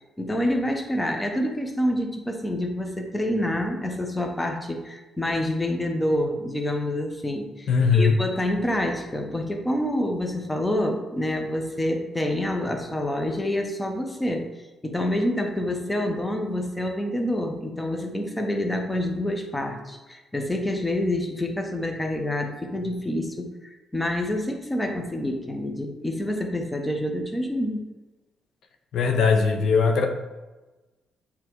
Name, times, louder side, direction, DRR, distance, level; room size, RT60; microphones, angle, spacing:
voice 1, 0.2-14.5 14.8-27.8, left 1 dB, 10° left, 3 dB, 0.9 m, -27 dB
voice 2, 7.7-8.2 28.9-30.1, left 5 dB, 70° left, 4 dB, 0.8 m, -20 dB
7.4 x 3.6 x 4.7 m, 1.1 s
cardioid pair, 90°, 0 cm